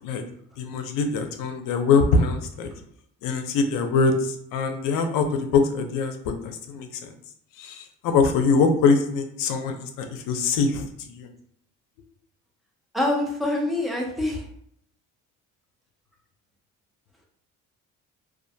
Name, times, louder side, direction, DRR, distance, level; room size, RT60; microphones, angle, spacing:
voice 1, 0.6-2.7 3.2-6.2 6.4-7.1 7.6-11.3, left 4 dB, 85° left, 6 dB, 0.5 m, -23 dB
voice 2, 12.9-14.4, left 1 dB, ahead, -1 dB, 0.3 m, -25 dB
2.4 x 2.1 x 2.6 m, 0.70 s
cardioid pair, 150°, 32 cm